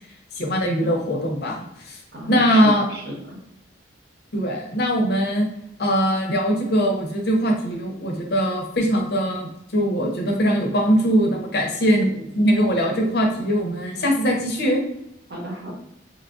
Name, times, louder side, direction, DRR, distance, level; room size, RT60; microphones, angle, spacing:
voice 1, 0.4-2.0 2.3-2.8 4.3-5.5 5.8-14.8, equal, 55° left, 0 dB, 0.6 m, -21 dB
voice 2, 2.1-3.4 13.9-14.0 15.3-15.8, equal, 55° right, -2 dB, 0.9 m, -33 dB
3.2 x 2.3 x 2.4 m, 0.77 s
head